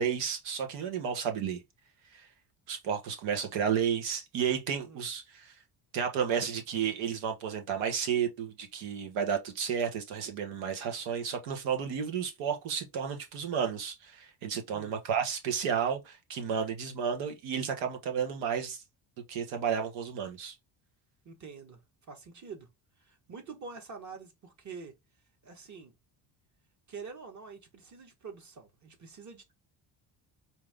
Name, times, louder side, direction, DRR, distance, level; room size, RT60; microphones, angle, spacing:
voice 1, 0.0-1.6 2.1-2.3 2.7-5.5 5.9-18.8 19.3-20.5, right 7 dB, 85° right, 1.3 m, -32 dB
voice 2, 21.2-22.7 23.0-25.0 25.4-25.9 26.9-29.5, right 5 dB, 40° right, 1.6 m, -46 dB
4.6 x 2.9 x 3.5 m
cardioid pair, 100°, 44 cm